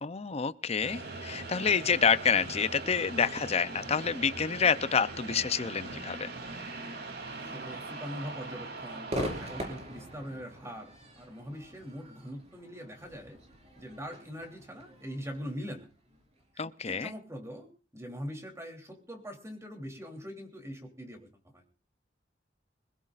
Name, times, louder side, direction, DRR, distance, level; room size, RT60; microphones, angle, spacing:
voice 1, 0.0-6.3 16.6-17.1, left 6 dB, 35° left, 0.6 m, -28 dB
sound 1, 0.8-11.0, right 3 dB, 65° right, 3.1 m, -41 dB
voice 2, 7.4-10.9 11.2-13.4 13.8-15.9 16.6-21.3 21.5-21.6, equal, 15° right, 3.3 m, -42 dB
Crowd / Fireworks, 9.1-16.4, equal, 40° right, 4.9 m, -42 dB
25.5 x 16.5 x 2.5 m
head